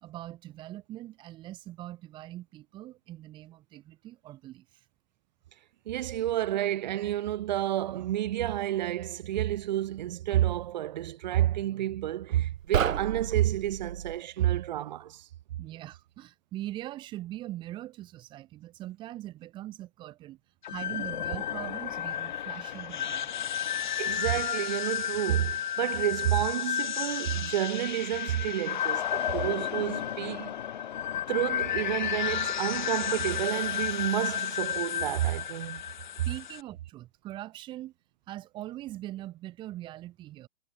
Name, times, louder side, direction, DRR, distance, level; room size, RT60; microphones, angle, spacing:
voice 1, 0.0-4.7 15.6-20.4 20.7-23.5 36.3-37.9 38.3-40.5, right 14 dB, 10° right, 1.1 m, -42 dB
voice 2, 5.9-15.3 24.0-30.5 31.3-35.8, right 13 dB, 35° right, 1.1 m, -30 dB
sound 1, 12.6-14.2, right 9 dB, 75° right, 1.1 m, -31 dB
sound 2, 20.6-36.6, left 10 dB, 40° left, 0.5 m, -32 dB
hypercardioid pair, 155°, 40 cm